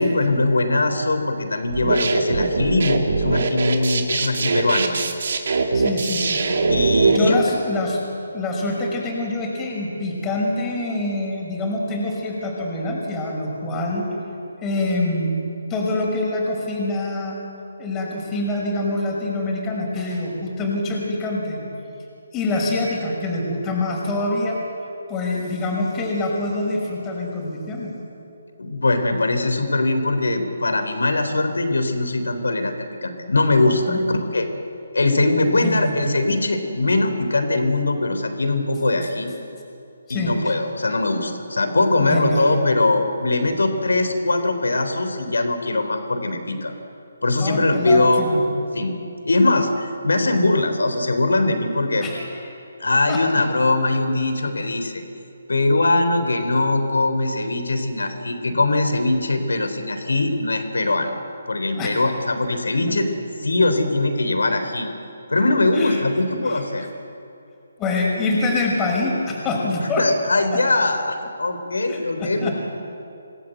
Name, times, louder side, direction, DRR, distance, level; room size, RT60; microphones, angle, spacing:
voice 1, 0.0-5.1 6.7-7.4 28.6-34.5 34.9-39.3 40.1-46.7 47.2-48.3 48.7-49.0 49.2-52.1 52.8-55.0 55.5-61.1 61.5-63.2 63.4-64.9 65.3-66.9 69.8-72.5, left 2 dB, 65° left, 7 dB, 3.7 m, -21 dB
sound 1, 1.7-7.2, right 4 dB, 50° right, 2.5 m, -21 dB
voice 2, 5.7-6.6 7.0-8.0 8.3-14.1 14.6-15.4 15.7-17.4 17.8-21.6 22.3-24.6 25.1-27.9 33.9-34.0 35.5-36.0 40.1-40.5 42.0-42.5 47.4-48.4 52.0-52.3 53.1-53.2 61.7-62.0 62.9-63.0 65.7-66.0 66.5-66.6 67.8-70.1 70.5-70.6 71.9-72.5, left 2 dB, 15° left, -1 dB, 5.5 m, -25 dB
27.0 x 19.0 x 8.0 m, 2.7 s
figure-of-eight pair, 145°, 0 cm